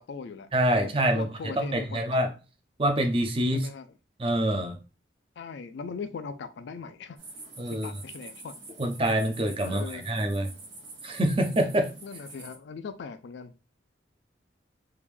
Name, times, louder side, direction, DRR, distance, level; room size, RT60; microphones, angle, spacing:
voice 1, 0.0-0.5 0.7-2.2 3.5-3.9 5.4-7.2 7.7-8.5 9.6-10.1 12.0-13.5, left 5 dB, 70° left, 0.4 m, -39 dB
voice 2, 0.5-1.3 1.5-2.3 2.8-3.7 4.2-4.8 7.6-7.9 8.8-10.5 11.0-11.9, right 1 dB, 30° right, 0.5 m, -26 dB
sound 1, 7.2-12.6, right 2 dB, 85° right, 1.5 m, -46 dB
3.5 x 2.5 x 3.2 m
head